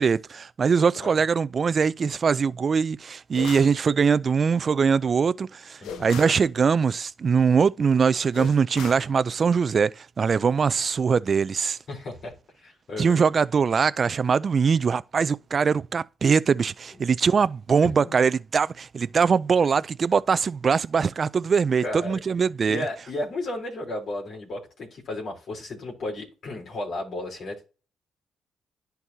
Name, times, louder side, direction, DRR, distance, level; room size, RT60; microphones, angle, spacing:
voice 1, 0.0-11.8 13.0-22.8, right 6 dB, 45° right, 0.4 m, -22 dB
sound 1, 3.3-3.8 5.8-6.4 8.3-9.1, left 7 dB, 85° left, 0.9 m, -37 dB
voice 2, 5.8-6.1 11.9-13.2 17.8-18.2 21.8-22.2 22.7-27.7, left 2 dB, 60° left, 3.6 m, -34 dB
11.0 x 4.6 x 2.8 m
cardioid pair, 90°, 0 cm